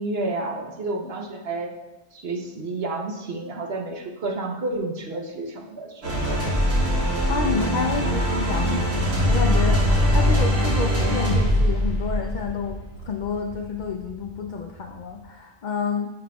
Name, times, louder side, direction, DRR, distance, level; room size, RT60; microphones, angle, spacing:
voice 1, 0.0-1.7 2.1-6.5, right 2 dB, 55° right, 2 dB, 1.0 m, -30 dB
sound 1, 6.0-14.6, equal, 80° right, 1.9 m, -22 dB
voice 2, 7.3-12.8 13.0-16.1, left 5 dB, 85° left, 4 dB, 0.4 m, -29 dB
10.0 x 5.8 x 2.3 m, 1.0 s
omnidirectional pair, 1.3 m